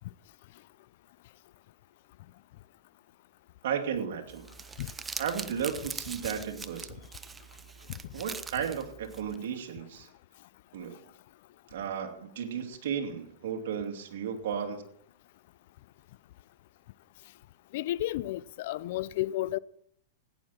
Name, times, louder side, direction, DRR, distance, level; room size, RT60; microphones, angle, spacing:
voice 1, 3.6-4.4 5.2-7.0 8.1-10.1 10.7-11.1 11.7-14.8, right 7 dB, 70° right, 2.6 m, -34 dB
Crumpling crinkling, 4.3-9.4, right 5 dB, 15° right, 0.6 m, -42 dB
voice 2, 17.7-19.6, left 15 dB, 60° left, 0.5 m, -32 dB
16.0 x 9.9 x 4.4 m
hypercardioid pair, 130°, 0 cm